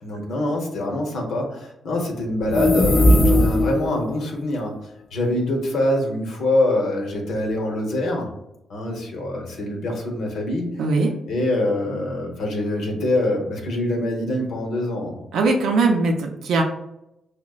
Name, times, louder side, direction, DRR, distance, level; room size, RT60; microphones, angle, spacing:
voice 1, 0.0-4.7 5.1-8.3 8.7-10.7 11.3-15.2, left 1 dB, 85° left, 1 dB, 0.8 m, -24 dB
sound 1, 2.4-3.9, left 1 dB, 25° left, 0.4 m, -17 dB
voice 2, 10.8-11.1 15.3-16.6, right 3 dB, 90° right, 2 dB, 0.5 m, -20 dB
4.9 x 2.1 x 2.3 m, 0.85 s
cardioid pair, 115°, 0 cm